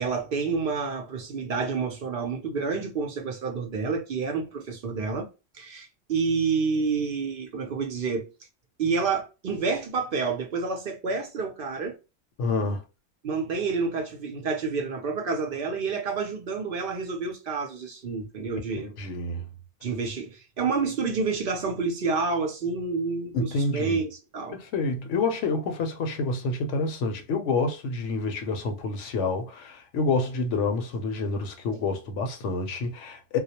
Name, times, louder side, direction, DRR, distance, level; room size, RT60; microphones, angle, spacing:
voice 1, 0.0-5.3 5.5-8.3 8.8-12.0 13.2-18.9 19.8-24.6, right 4 dB, 60° right, 0.7 m, -29 dB
voice 2, 12.4-12.8 18.8-19.4 23.3-24.0 24.5-33.4, left 3 dB, 80° left, 0.9 m, -28 dB
2.3 x 2.0 x 2.7 m
omnidirectional pair, 1.2 m